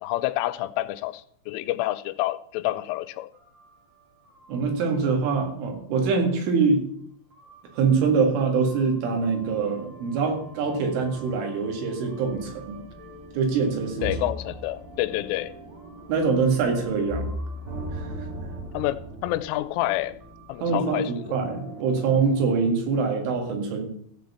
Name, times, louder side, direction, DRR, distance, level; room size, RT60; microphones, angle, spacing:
voice 1, 0.0-3.3 14.0-15.5 18.7-20.1 20.5-21.4, left 15 dB, 90° left, 14 dB, 3.2 m, -28 dB
sound 1, 3.3-4.9 5.2-5.3 6.1-6.2 7.3-22.7, equal, 40° right, 2.2 m, -40 dB
voice 2, 4.5-6.8 7.7-12.8 13.3-14.1 16.1-17.3 17.9-18.1 20.6-21.0 21.3-23.9, right 5 dB, 80° right, 2 dB, 4.5 m, -24 dB
15.0 x 5.2 x 7.0 m, 0.65 s
omnidirectional pair, 5.6 m